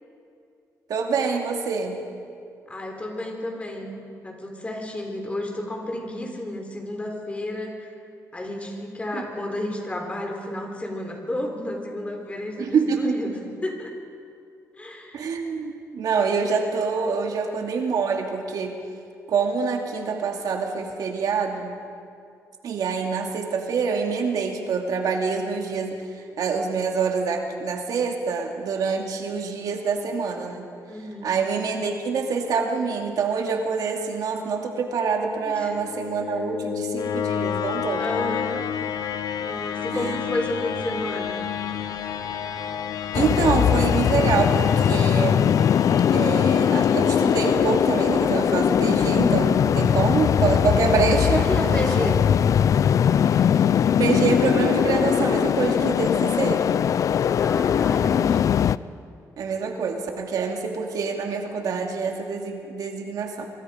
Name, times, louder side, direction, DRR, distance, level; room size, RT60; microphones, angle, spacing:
voice 1, 0.9-2.0 9.1-9.2 12.6-13.3 15.1-18.8 19.3-21.8 22.6-26.1 26.4-30.7 31.2-38.1 39.9-40.1 43.1-45.6 46.1-52.1 53.3-53.5 54.0-56.6 59.4-63.5, right 5 dB, 75° right, 2 dB, 2.5 m, -26 dB
voice 2, 2.7-3.9 4.2-7.9 8.3-13.9 14.7-15.3 30.9-31.3 35.4-35.7 38.0-38.7 39.4-41.5 51.3-52.2 57.4-58.5, left 1 dB, 20° left, 2 dB, 4.0 m, -32 dB
sound 1, 35.6-48.7, left 8 dB, 75° left, 1.2 m, -30 dB
sound 2, 43.1-58.8, left 8 dB, 60° left, 0.4 m, -20 dB
25.5 x 24.0 x 5.1 m, 2.4 s
cardioid pair, 110°, 6 cm